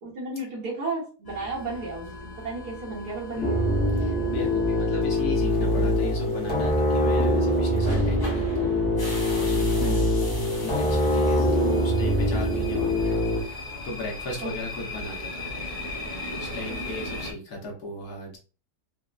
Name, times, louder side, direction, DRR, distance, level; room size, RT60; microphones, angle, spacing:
voice 1, 0.0-3.6 9.8-10.1 14.4-14.7 16.7-16.8, right 3 dB, 75° right, -5 dB, 1.5 m, -34 dB
sound 1, 1.2-17.3, left 1 dB, 35° left, 0.3 m, -38 dB
sound 2, 3.4-13.4, left 1 dB, 10° left, 0.7 m, -23 dB
voice 2, 4.0-8.8 9.4-9.9 10.6-15.5 16.3-18.4, left 2 dB, 70° left, -1 dB, 1.4 m, -37 dB
4.1 x 2.0 x 2.4 m, 0.36 s
omnidirectional pair, 1.7 m